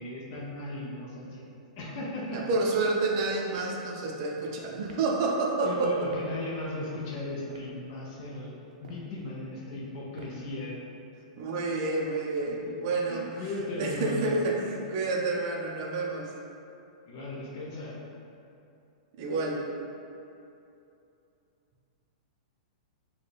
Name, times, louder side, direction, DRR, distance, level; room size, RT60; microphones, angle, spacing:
voice 1, 0.0-1.4 1.8-2.5 5.6-8.5 8.8-10.8 13.1-14.4 17.1-18.0, left 2 dB, 35° left, -5 dB, 0.5 m, -36 dB
voice 2, 2.3-5.9 11.3-13.2 13.5-16.3 19.2-19.6, right 3 dB, 35° right, -1 dB, 0.5 m, -29 dB
sound 1, 3.5-3.8 4.8-5.1 6.1-6.3 7.4-7.8 8.7-9.1 10.2-10.5, right 2 dB, 85° right, 0.5 m, -51 dB
4.0 x 2.2 x 3.3 m, 2.7 s
supercardioid pair, 170°, 4 cm